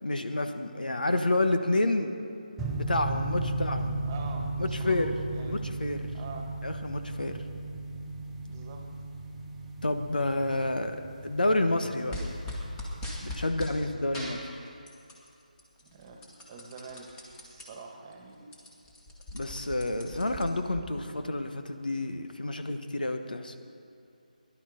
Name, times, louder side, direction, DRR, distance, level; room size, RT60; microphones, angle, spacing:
voice 1, 0.0-2.1 2.7-3.9 4.6-5.1 5.4-6.1 6.6-7.4 9.8-12.2 13.2-14.5 19.3-23.5, left 2 dB, 80° left, 7 dB, 1.2 m, -29 dB
sound 1, 2.6-13.4, right 2 dB, 10° right, 0.8 m, -36 dB
voice 2, 4.0-5.6 6.1-6.5 8.4-8.9 13.7-14.3 15.9-18.5, right 4 dB, 25° right, 2 dB, 1.6 m, -46 dB
sound 2, 12.1-13.8 14.1-15.3 15.6-17.6 18.1-18.2 18.4-20.8, left 1 dB, 15° left, 1.8 m, -39 dB
17.5 x 11.5 x 5.0 m, 2.6 s
figure-of-eight pair, 160°, 5 cm